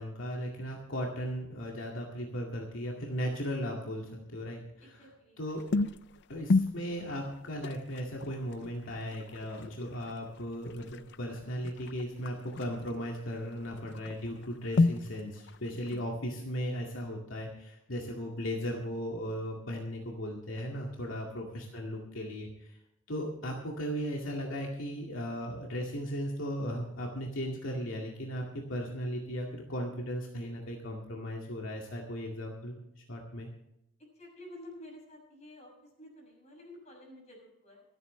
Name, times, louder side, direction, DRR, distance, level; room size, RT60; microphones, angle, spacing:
voice 1, 0.0-4.6 4.9-5.0 5.4-5.6 6.3-22.8 23.1-32.7 33.1-33.5, equal, 80° left, 0 dB, 2.1 m, -37 dB
voice 2, 4.8-5.4 6.3-6.4 34.1-37.8, left 1 dB, 35° left, 0 dB, 6.3 m, -51 dB
sound 1, 5.4-16.1, left 3 dB, 60° left, 0.5 m, -34 dB
26.0 x 9.3 x 3.2 m, 0.83 s
head